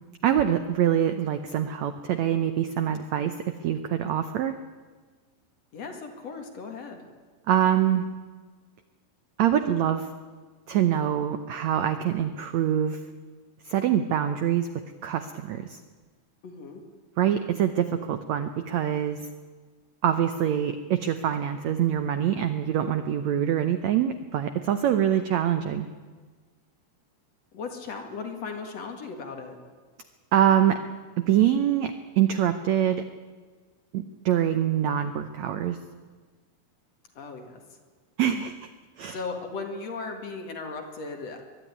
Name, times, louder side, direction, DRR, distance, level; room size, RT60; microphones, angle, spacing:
voice 1, 0.2-3.3 3.6-4.6 7.5-8.0 9.4-10.1 10.7-13.0 13.6-14.7 15.0-15.8 17.2-19.3 20.0-25.9 30.3-30.8 31.2-33.0 33.9-35.8 38.2-38.6 39.0-39.2, right 10 dB, 80° right, 9 dB, 1.6 m, -24 dB
voice 2, 5.7-7.0 16.4-16.8 27.5-29.6 37.2-37.6 39.1-41.4, left 4 dB, 50° left, 3 dB, 2.7 m, -37 dB
22.0 x 12.5 x 9.7 m, 1.4 s
omnidirectional pair, 4.2 m